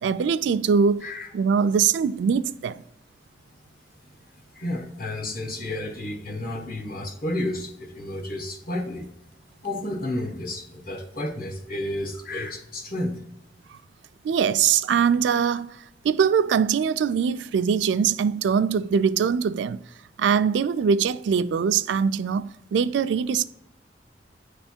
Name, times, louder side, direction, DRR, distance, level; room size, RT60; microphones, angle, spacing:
voice 1, 0.0-2.8 13.7-13.8 14.2-19.8 20.2-23.4, right 6 dB, 80° right, 0.3 m, -22 dB
voice 2, 4.5-9.1 9.6-13.2, left 1 dB, 55° left, 1.1 m, -31 dB
9.4 x 3.3 x 4.4 m
head